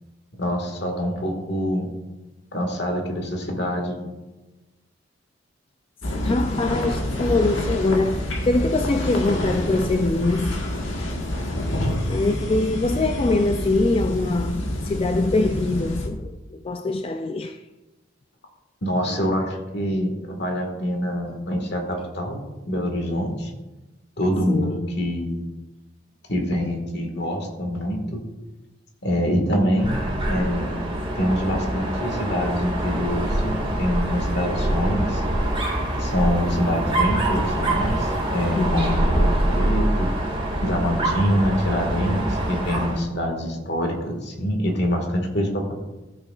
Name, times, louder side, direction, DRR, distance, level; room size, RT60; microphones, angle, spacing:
voice 1, 0.4-1.9 2.5-4.1 18.8-23.5 24.2-25.4 26.3-28.2 29.0-30.0 30.3-30.8 31.1-35.2 36.0-40.1 40.6-45.7, equal, 60° left, 1.7 m, -25 dB
sound 1, 6.0-16.1, left 1 dB, 90° left, 1.5 m, -27 dB
voice 2, 6.2-10.6 12.1-17.6 24.5-24.9 38.6-39.1, left 2 dB, 30° left, 0.3 m, -23 dB
Dog, 29.7-43.0, right 1 dB, 30° right, 1.8 m, -24 dB
14.5 x 6.5 x 2.4 m
head